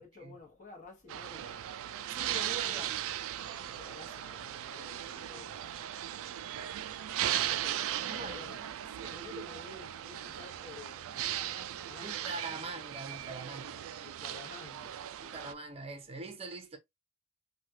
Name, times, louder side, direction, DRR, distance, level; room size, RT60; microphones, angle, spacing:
voice 1, 0.0-1.7 2.4-3.0 3.6-5.6 7.1-8.7 9.0-12.4 13.6-15.1, left 4 dB, 35° left, 1.0 m, -52 dB
sound 1, 1.1-15.5, right 11 dB, 65° right, 0.3 m, -37 dB
voice 2, 2.1-3.0 8.0-8.7 9.0-9.2 12.0-13.8 15.2-16.8, right 3 dB, 25° right, 0.7 m, -43 dB
3.2 x 2.3 x 2.6 m
head